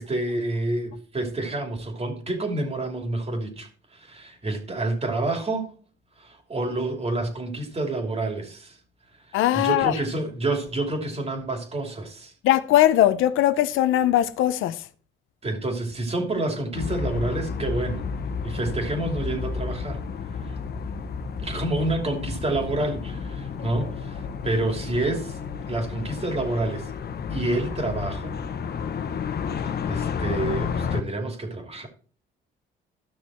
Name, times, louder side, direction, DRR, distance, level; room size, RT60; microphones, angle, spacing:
voice 1, 0.0-5.7 6.2-8.8 9.3-12.3 15.4-18.0 18.4-20.0 20.4-20.6 21.4-25.4 25.7-26.9 27.3-28.3 29.5-31.9, right 2 dB, 30° right, 2.9 m, -28 dB
voice 2, 9.3-10.0 12.4-14.8, left 13 dB, 90° left, 0.7 m, -20 dB
sound 1, 16.7-31.0, left 6 dB, 55° left, 1.1 m, -31 dB
13.5 x 6.3 x 4.3 m
cardioid pair, 90°, 20 cm